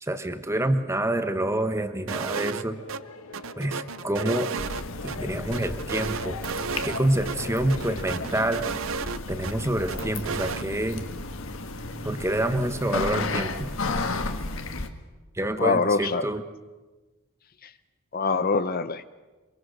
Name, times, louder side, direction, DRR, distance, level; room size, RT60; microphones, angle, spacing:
voice 1, 0.0-2.8 3.6-4.5 5.0-6.4 6.8-8.7 9.3-11.0 12.0-13.7 15.3-16.4, right 1 dB, 15° right, 9 dB, 1.2 m, -27 dB
sound 1, 2.1-2.6 2.9-3.0 3.3-5.2 5.5-7.0 7.3-7.4 7.7-9.5 9.9-10.6, right 5 dB, 65° right, 0.6 m, -33 dB
sound 2, 2.7-8.3, left 3 dB, 85° left, 1.8 m, -40 dB
sound 3, 4.6-14.9, left 3 dB, 65° left, 1.6 m, -33 dB
voice 2, 15.6-16.3 17.6-17.7 18.1-19.1, left 4 dB, 45° left, 12 dB, 0.8 m, -24 dB
24.0 x 23.0 x 6.6 m, 1.2 s
head